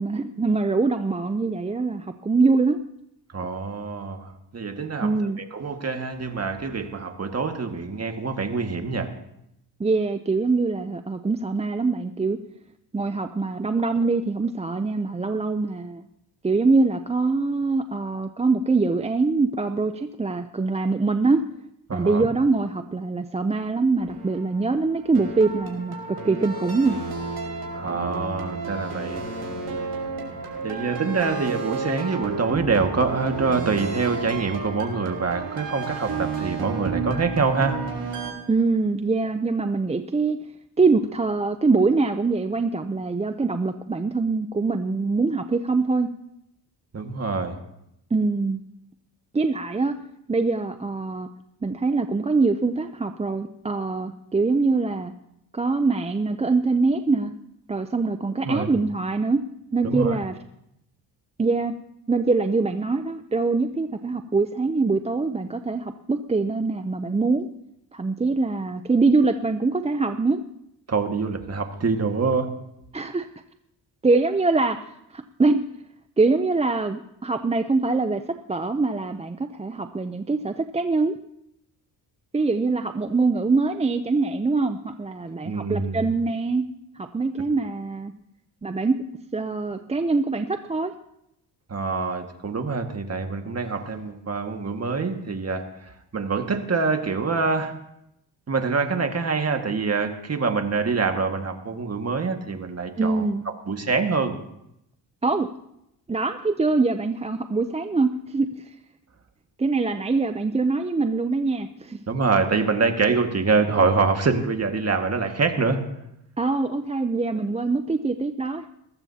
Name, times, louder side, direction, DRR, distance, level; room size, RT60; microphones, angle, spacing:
voice 1, 0.0-2.8 5.0-5.4 9.8-12.4 12.9-16.0 16.4-21.4 21.9-27.0 38.5-40.4 40.8-46.1 48.1-48.6 49.3-50.0 50.3-51.3 51.6-55.1 55.5-57.3 57.7-59.4 59.7-60.4 61.4-61.8 62.1-67.5 67.9-70.4 72.9-73.3 74.0-74.8 75.1-75.6 76.2-78.2 78.5-81.2 82.3-86.6 87.0-88.1 88.6-89.0 89.3-90.9 103.0-103.4 105.2-105.5 106.1-108.7 109.6-112.0 116.4-118.7, right 3 dB, 15° right, 8 dB, 0.6 m, -23 dB
voice 2, 3.3-9.1 21.9-22.3 27.7-29.3 30.6-37.8 46.9-47.6 58.4-58.7 59.8-60.2 70.9-72.6 85.4-86.1 91.7-97.8 98.5-103.3 103.7-104.3 112.1-115.9, right 4 dB, 35° right, 5 dB, 1.9 m, -25 dB
sound 1, 24.0-38.3, right 4 dB, 55° right, 4.8 m, -32 dB
20.5 x 14.5 x 2.9 m, 0.81 s
cardioid pair, 70°, 43 cm